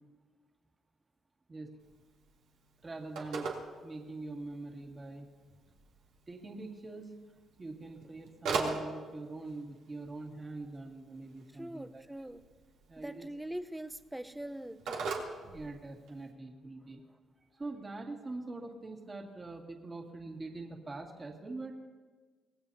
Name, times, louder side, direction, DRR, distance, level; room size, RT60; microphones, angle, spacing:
Telephone, 1.8-16.3, right 4 dB, 90° right, 3.0 m, -43 dB
voice 1, 2.8-3.5 3.8-5.3 6.3-7.1 7.6-12.3 12.9-13.3 15.5-17.0 17.6-21.7, right 2 dB, 30° right, 0 dB, 2.2 m, -43 dB
voice 2, 11.6-12.4 13.0-15.1, right 1 dB, 5° right, 10 dB, 0.8 m, -42 dB
25.0 x 19.0 x 2.8 m, 1.4 s
cardioid pair, 90°, 0 cm